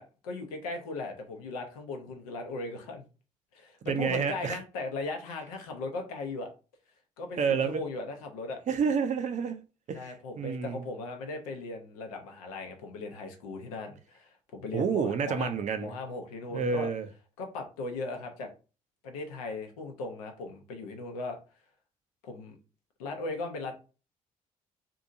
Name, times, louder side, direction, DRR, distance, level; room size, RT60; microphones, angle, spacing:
voice 1, 0.0-3.0 3.5-6.5 7.2-8.6 9.9-15.5 15.8-16.9 17.4-18.5 19.0-21.4 22.2-22.6 23.0-23.7, left 3 dB, 80° left, 0.7 m, -38 dB
voice 2, 3.8-4.6 7.4-7.8 8.7-9.6 9.9-10.8 14.7-15.9 16.5-17.1, right 6 dB, 40° right, 0.5 m, -29 dB
2.7 x 2.6 x 2.5 m
figure-of-eight pair, 50°, 18 cm